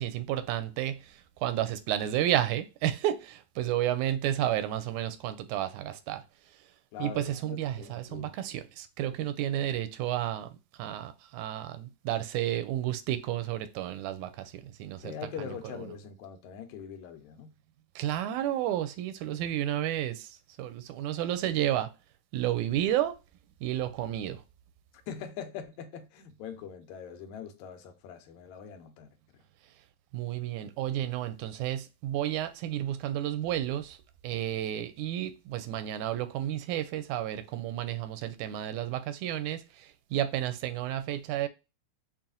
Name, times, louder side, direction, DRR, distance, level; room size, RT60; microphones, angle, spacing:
voice 1, 0.0-6.2 7.0-10.5 10.8-15.8 18.0-21.9 22.3-23.2 23.6-24.4 30.1-34.0 34.2-41.5, right 12 dB, 85° right, 1.9 m, -31 dB
voice 2, 6.9-7.2 7.5-8.3 15.0-17.5 25.1-29.1, left 8 dB, 85° left, 2.0 m, -42 dB
5.5 x 2.4 x 2.5 m
omnidirectional pair, 3.3 m